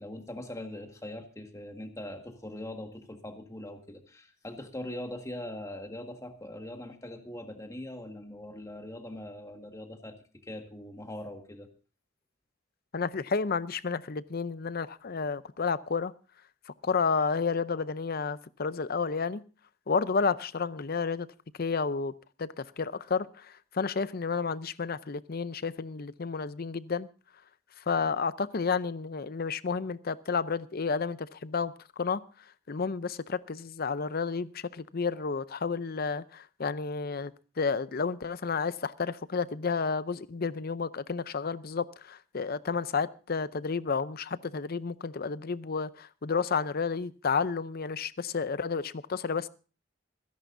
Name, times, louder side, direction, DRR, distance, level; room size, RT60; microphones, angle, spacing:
voice 1, 0.0-10.2 10.4-11.7, left 1 dB, 15° left, 1.7 m, -41 dB
voice 2, 12.9-16.1 16.7-19.4 19.9-21.3 21.6-22.1 22.4-27.1 27.8-32.2 32.7-49.5, left 5 dB, 50° left, 0.6 m, -31 dB
26.5 x 10.5 x 2.6 m
head